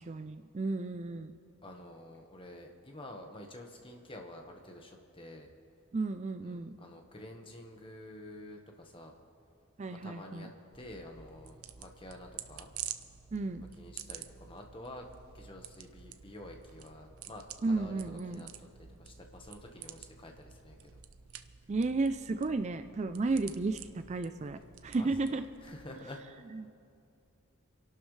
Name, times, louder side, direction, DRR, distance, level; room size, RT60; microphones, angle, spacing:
voice 1, 0.0-1.3 5.9-6.7 9.8-10.5 13.3-13.7 17.6-18.5 21.7-25.4, right 3 dB, 30° right, 9 dB, 0.4 m, -33 dB
voice 2, 1.6-5.5 6.4-9.1 9.9-10.5 10.7-12.7 13.8-15.1 15.3-21.5 24.9-26.2, left 1 dB, 25° left, 2 dB, 1.3 m, -49 dB
sound 1, 10.7-25.9, right 10 dB, 80° right, 0.6 m, -49 dB
28.0 x 12.0 x 3.3 m, 2.6 s
head